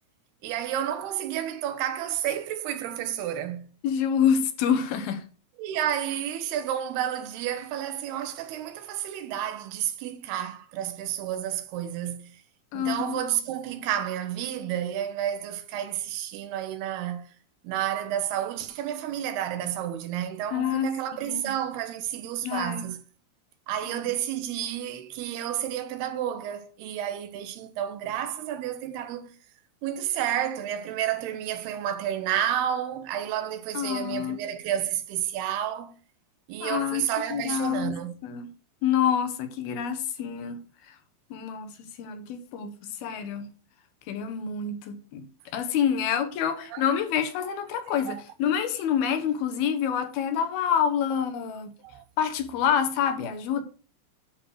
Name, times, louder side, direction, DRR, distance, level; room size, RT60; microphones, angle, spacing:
voice 1, 0.4-3.7 5.6-12.4 12.7-17.3 17.6-23.0 23.7-29.3 29.8-35.9 36.5-38.2 46.7-46.9 47.7-48.2 51.8-52.0, right 10 dB, 90° right, 3.1 m, -31 dB
voice 2, 3.8-5.2 12.7-13.2 20.5-20.9 21.2-21.5 22.4-22.9 23.9-24.0 33.7-34.4 36.6-38.0 38.2-38.5 38.8-40.6 40.9-41.0 41.3-41.7 42.0-43.5 44.1-45.3 45.5-51.7 52.2-53.6, left 8 dB, 80° left, 3.1 m, -27 dB
11.0 x 4.9 x 6.3 m
omnidirectional pair, 4.4 m